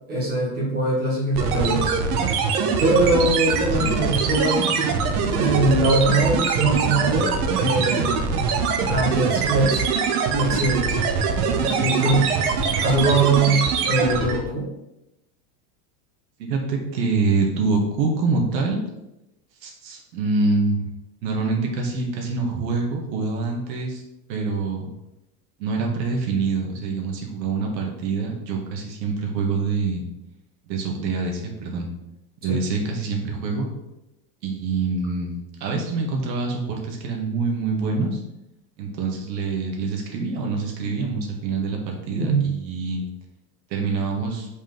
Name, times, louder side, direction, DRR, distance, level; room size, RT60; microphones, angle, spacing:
voice 1, 0.1-1.9 2.8-4.9 5.3-8.2 8.8-9.8 10.3-11.0 11.8-12.2 12.8-14.6 32.5-32.6 42.2-42.5, right 2 dB, 20° right, -4 dB, 1.8 m, -22 dB
sound 1, 1.3-14.5, right 5 dB, 60° right, 1.0 m, -23 dB
voice 2, 3.7-4.2 4.6-4.7 13.8-14.1 16.4-18.8 19.6-20.9 21.2-24.0 24.3-24.9 25.6-30.0 30.7-31.9 32.4-33.7 34.4-35.3 35.6-38.2 38.8-43.0 43.7-44.5, right 4 dB, 85° right, 1 dB, 1.9 m, -25 dB
5.4 x 5.2 x 3.9 m, 0.92 s
supercardioid pair, 180°, 50 cm